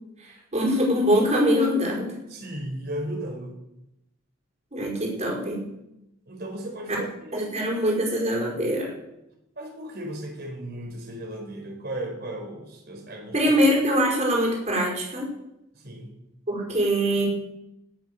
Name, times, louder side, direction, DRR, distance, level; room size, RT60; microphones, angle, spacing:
voice 1, 0.2-2.1 4.7-5.6 7.3-8.9 13.3-15.3 16.5-17.3, equal, 35° right, -2 dB, 5.1 m, -23 dB
voice 2, 2.3-3.6 6.3-7.9 9.6-13.4 15.7-16.1, right 1 dB, 55° right, 2 dB, 4.5 m, -35 dB
18.0 x 8.0 x 6.8 m, 0.88 s
head